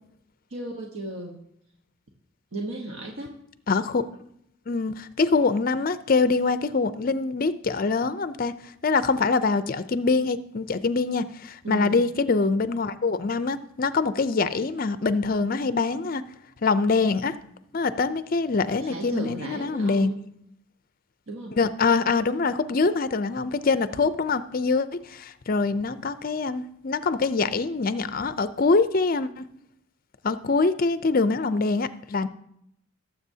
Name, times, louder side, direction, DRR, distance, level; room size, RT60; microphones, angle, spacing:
voice 1, 0.5-1.4 2.5-3.4 11.6-12.0 18.8-20.2 21.3-21.6, right 1 dB, 70° right, 1 dB, 1.1 m, -35 dB
voice 2, 3.7-4.4 4.7-16.2 16.6-17.3 17.7-20.1 21.6-29.5 30.2-32.3, left 4 dB, 40° left, 13 dB, 0.4 m, -24 dB
18.5 x 7.5 x 2.8 m, 0.76 s
head